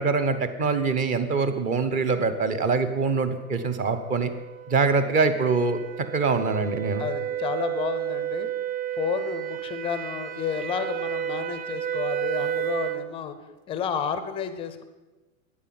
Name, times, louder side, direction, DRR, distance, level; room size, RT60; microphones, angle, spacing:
voice 1, 0.0-4.3 4.7-5.8 6.1-7.0, right 4 dB, 20° right, 10 dB, 0.8 m, -24 dB
sound 1, 3.2-13.1, right 10 dB, 75° right, 1.2 m, -32 dB
voice 2, 7.0-8.5 9.0-13.4 13.7-14.8, left 7 dB, 15° left, 10 dB, 0.6 m, -31 dB
11.0 x 9.4 x 7.6 m, 1.2 s
supercardioid pair, 150°, 42 cm